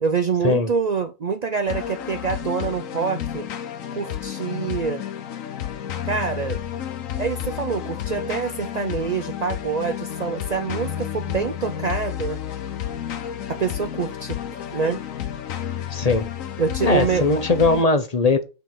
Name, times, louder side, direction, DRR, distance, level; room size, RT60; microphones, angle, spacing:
voice 1, 0.0-3.5 3.9-5.0 6.0-6.6 7.2-12.4 13.5-15.0 16.6-17.2, right 5 dB, 75° right, 0.3 m, -26 dB
sound 1, 1.7-17.8, left 10 dB, 65° left, 1.2 m, -31 dB
voice 2, 15.9-16.3 16.8-18.4, left 3 dB, 30° left, 0.9 m, -20 dB
6.1 x 4.6 x 6.5 m
omnidirectional pair, 1.6 m